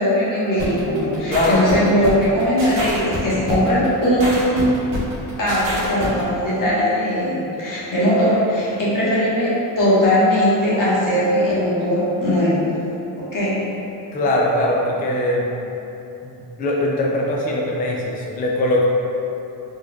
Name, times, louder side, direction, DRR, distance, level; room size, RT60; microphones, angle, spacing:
voice 1, 0.0-4.7 5.4-12.7 13.2-13.6, equal, 45° left, -8 dB, 1.2 m, -19 dB
sound 1, 0.6-6.2, right 1 dB, 70° right, 0.9 m, -27 dB
voice 2, 1.3-1.6 3.3-3.6 14.1-15.5 16.2-18.9, left 1 dB, 20° left, -2 dB, 0.3 m, -21 dB
4.1 x 3.2 x 2.2 m, 2.9 s
cardioid pair, 110°, 46 cm